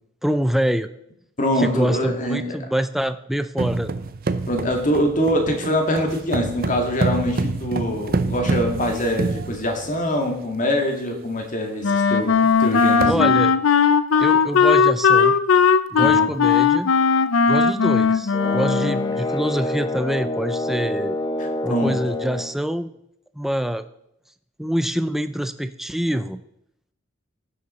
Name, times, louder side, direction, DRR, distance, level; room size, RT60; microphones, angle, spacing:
voice 1, 0.2-0.9 1.6-3.9 13.1-13.5 14.2-15.3 15.9-16.9 17.5-21.2 21.6-22.9 23.4-23.8 24.6-26.4, equal, ahead, 11 dB, 0.4 m, -25 dB
voice 2, 1.4-2.6 4.5-13.3 16.0-16.3 21.4-22.0, equal, 40° left, 3 dB, 1.8 m, -24 dB
sound 1, 3.6-10.1 10.7-10.8 11.1-11.4 11.7-11.8 12.5-12.6 12.8-13.2, right 3 dB, 45° right, 0.6 m, -27 dB
Wind instrument woodwind instrument, 11.8-19.2, left 5 dB, 85° left, 0.5 m, -18 dB
sound 2, 18.3-22.6, left 1 dB, 20° left, 1.0 m, -27 dB
15.5 x 6.6 x 4.2 m, 0.78 s
head